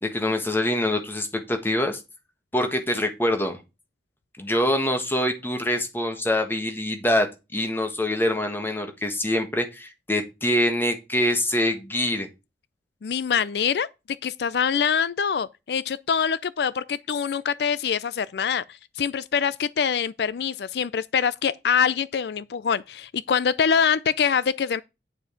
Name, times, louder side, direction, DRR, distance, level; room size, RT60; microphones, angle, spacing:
voice 1, 0.0-2.0 2.5-3.6 4.4-7.3 7.5-12.3, left 1 dB, 10° left, 1.5 m, -24 dB
voice 2, 13.0-13.9 14.2-24.8, left 7 dB, 65° left, 0.4 m, -24 dB
9.5 x 5.1 x 5.0 m
head